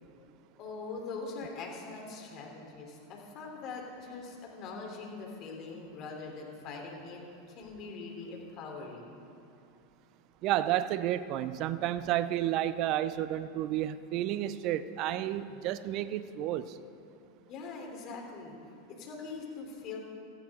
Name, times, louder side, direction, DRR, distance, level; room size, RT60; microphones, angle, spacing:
voice 1, 0.6-7.2 7.5-9.2 17.5-18.6 18.9-20.0, left 4 dB, 45° left, 1 dB, 3.5 m, -42 dB
voice 2, 10.4-16.8, right 12 dB, 50° right, 14 dB, 0.6 m, -31 dB
16.5 x 14.5 x 3.7 m, 2.7 s
hypercardioid pair, 100°, 0 cm